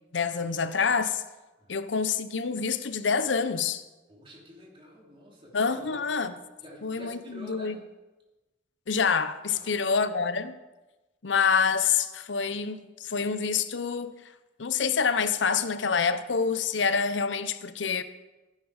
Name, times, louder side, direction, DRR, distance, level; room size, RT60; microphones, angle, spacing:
voice 1, 0.1-1.2 1.7-3.8 5.5-6.3 6.8-7.8 8.9-10.6 11.2-14.2 14.6-18.0, left 5 dB, 90° left, 0.7 m, -27 dB
voice 2, 1.6-2.0 4.1-6.1 6.6-7.8 9.5-9.8, left 1 dB, 30° right, 3.2 m, -48 dB
15.0 x 9.9 x 4.9 m
head